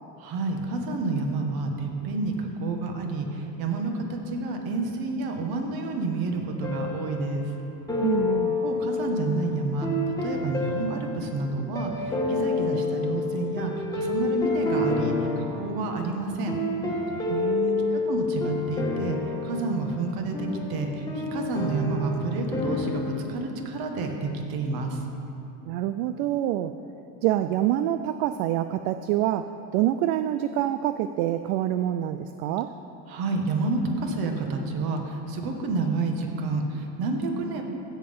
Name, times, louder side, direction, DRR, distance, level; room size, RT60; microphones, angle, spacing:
voice 1, 0.2-7.5 8.6-16.6 17.9-25.0 33.1-37.6, right 3 dB, 50° right, 3 dB, 1.6 m, -29 dB
sound 1, 6.6-7.5 7.9-23.2, left 3 dB, 10° left, 1.4 m, -29 dB
voice 2, 8.0-8.6 17.3-18.0 25.7-26.7 27.2-32.7, right 12 dB, 70° right, 10 dB, 0.5 m, -26 dB
15.5 x 5.7 x 5.4 m, 2.9 s
supercardioid pair, 115°, 45 cm